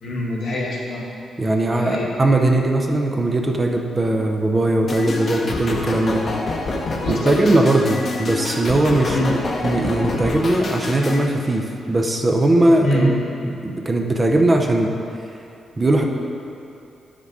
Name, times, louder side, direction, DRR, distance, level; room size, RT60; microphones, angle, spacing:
voice 1, 0.0-1.0 1.8-2.1 7.0-7.3 9.1-9.3 12.8-13.1, equal, 75° left, -2 dB, 1.6 m, -24 dB
voice 2, 1.4-6.2 7.1-13.2 13.4-14.9 15.8-16.0, right 1 dB, 20° right, 2 dB, 0.6 m, -19 dB
sound 1, 4.9-11.2, left 2 dB, 40° left, 0.8 m, -27 dB
8.5 x 5.9 x 4.7 m, 2.7 s
cardioid pair, 140°, 0 cm